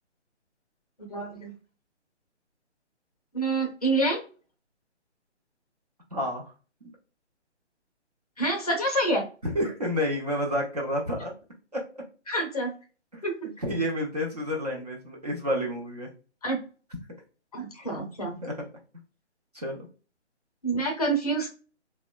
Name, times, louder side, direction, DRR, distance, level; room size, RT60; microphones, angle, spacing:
voice 1, 1.1-1.5 3.3-4.2 8.4-9.2 12.3-12.7 13.2-13.5 16.4-16.6 17.5-18.4 20.6-21.5, right 2 dB, 35° left, 1 dB, 0.7 m, -27 dB
voice 2, 6.1-6.5 9.4-11.3 13.6-16.1 18.4-18.5 19.5-19.8, equal, 35° right, -2 dB, 0.5 m, -29 dB
2.8 x 2.1 x 2.2 m, 0.36 s
hypercardioid pair, 160°, 35 cm